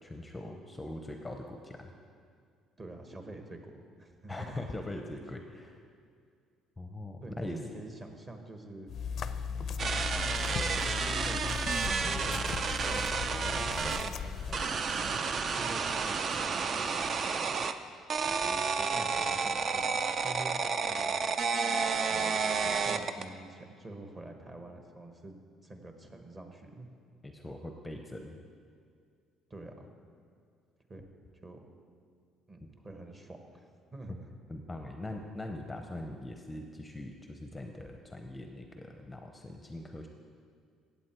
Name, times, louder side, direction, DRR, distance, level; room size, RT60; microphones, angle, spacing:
voice 1, 0.0-1.9 4.3-5.8 6.8-7.6 27.2-28.4 32.6-32.7 34.5-40.1, left 1 dB, 10° left, 4 dB, 0.7 m, -41 dB
voice 2, 2.8-4.6 7.2-8.9 9.5-10.8 11.1-13.1 13.4-15.3 15.6-17.6 18.2-21.2 22.1-26.9 29.5-29.9 30.9-31.0 31.3-31.6 32.5-33.6 33.9-34.1, right 2 dB, 25° right, 4 dB, 1.3 m, -47 dB
sound 1, 8.9-14.7, left 6 dB, 50° left, 0.5 m, -37 dB
sound 2, 9.8-14.1 14.5-17.7 18.1-23.3, right 5 dB, 40° right, 0.5 m, -31 dB
15.5 x 8.1 x 4.5 m, 2.2 s
cardioid pair, 120°, 0 cm